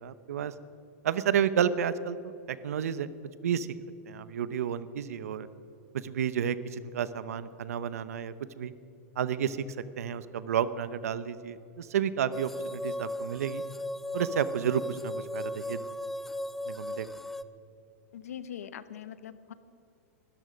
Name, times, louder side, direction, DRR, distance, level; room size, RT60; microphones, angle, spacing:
voice 1, 0.0-0.5 1.0-3.1 3.4-3.7 4.1-5.5 5.9-8.7 9.2-9.6 10.0-13.6 14.1-15.8 16.7-17.1, right 8 dB, 85° right, 15 dB, 0.8 m, -31 dB
sound 1, 12.3-17.4, left 1 dB, 5° left, 0.4 m, -36 dB
voice 2, 18.1-19.5, left 9 dB, 90° left, 14 dB, 0.9 m, -42 dB
20.0 x 13.5 x 5.2 m, 2.8 s
hypercardioid pair, 135°, 8 cm